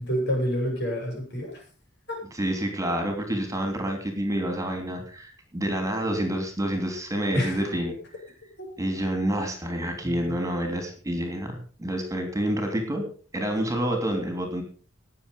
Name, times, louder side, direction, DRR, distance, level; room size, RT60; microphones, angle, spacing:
voice 1, 0.0-1.6 2.1-2.2 7.3-7.7 10.0-10.2, equal, 60° left, 1 dB, 7.3 m, -28 dB
voice 2, 2.3-7.9 8.8-13.1 13.3-14.6, right 1 dB, 15° right, 4 dB, 3.1 m, -28 dB
20.0 x 7.4 x 5.4 m, 0.40 s
head